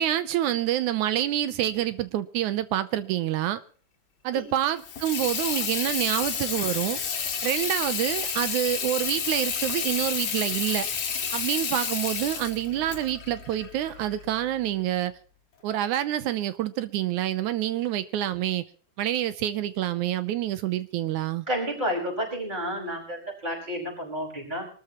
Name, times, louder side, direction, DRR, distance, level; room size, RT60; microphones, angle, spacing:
voice 1, 0.0-3.6 4.2-7.0 7.4-10.9 11.3-15.2 15.6-18.6 19.0-21.5, right 12 dB, 75° right, 2.1 m, -27 dB
Water tap faucet / Sink (filling or washing), 4.8-14.4, left 6 dB, 50° left, 2.9 m, -30 dB
voice 2, 21.5-24.7, equal, 15° right, 5.6 m, -30 dB
24.5 x 13.0 x 3.0 m
omnidirectional pair, 3.7 m